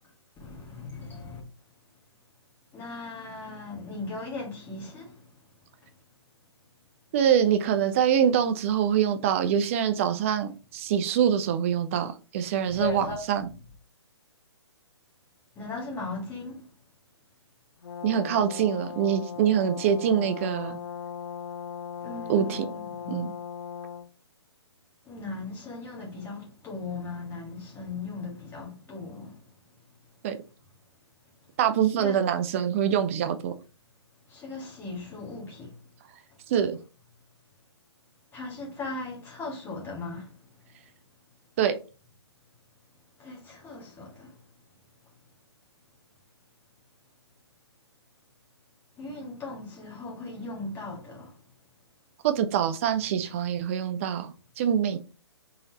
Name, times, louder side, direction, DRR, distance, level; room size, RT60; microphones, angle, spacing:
voice 1, 0.4-1.4 2.7-5.1 12.7-13.2 15.5-16.6 22.0-23.3 25.1-29.3 32.0-32.2 34.3-35.7 38.3-40.3 43.2-44.3 49.0-51.3, left 3 dB, 15° left, 1.7 m, -38 dB
voice 2, 7.1-13.5 18.0-20.8 22.3-22.7 23.1-23.3 30.2-30.4 31.6-33.5 36.5-36.8 41.6-41.8 52.2-55.0, right 9 dB, 30° right, 0.4 m, -25 dB
Brass instrument, 17.8-24.1, left 7 dB, 65° left, 0.5 m, -38 dB
3.9 x 3.9 x 2.8 m
hypercardioid pair, 140°, 15 cm